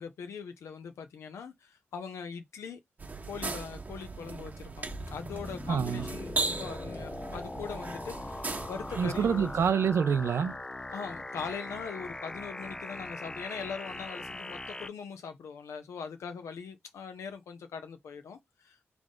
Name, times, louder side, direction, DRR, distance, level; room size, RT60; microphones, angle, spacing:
voice 1, 0.0-2.8 3.2-9.5 10.9-18.8, left 6 dB, 75° left, 0.6 m, -41 dB
sound 1, 3.0-9.7, right 3 dB, 35° right, 1.0 m, -38 dB
sound 2, 4.9-14.9, left 2 dB, 15° left, 0.4 m, -41 dB
voice 2, 5.7-6.1 9.0-10.5, right 7 dB, 65° right, 0.7 m, -27 dB
3.8 x 3.4 x 3.7 m
cardioid pair, 80°, 5 cm